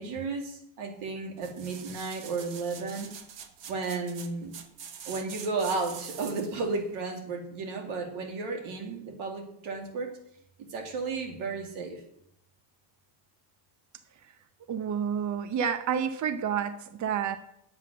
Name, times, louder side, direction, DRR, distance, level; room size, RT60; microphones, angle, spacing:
voice 1, 0.0-3.1 3.7-4.6 5.1-10.2 10.7-12.0, right 4 dB, 85° right, 3 dB, 2.5 m, -33 dB
sound 1, 1.4-6.6 7.1-7.2, right 7 dB, 60° right, 1.3 m, -44 dB
voice 2, 14.7-17.4, right 8 dB, 40° right, 11 dB, 0.7 m, -29 dB
9.7 x 7.7 x 6.2 m, 0.75 s
cardioid pair, 140°, 48 cm